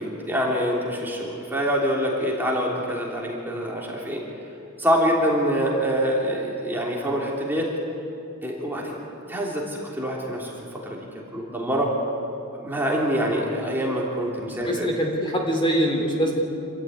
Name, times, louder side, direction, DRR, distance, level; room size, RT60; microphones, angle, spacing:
voice 1, 0.0-4.2 4.8-7.7 8.4-9.0 9.3-11.0 11.3-11.9 12.5-14.9, equal, 10° right, -3 dB, 3.2 m, -25 dB
voice 2, 14.6-16.4, equal, 25° left, 1 dB, 3.2 m, -24 dB
27.5 x 14.0 x 9.4 m, 2.7 s
head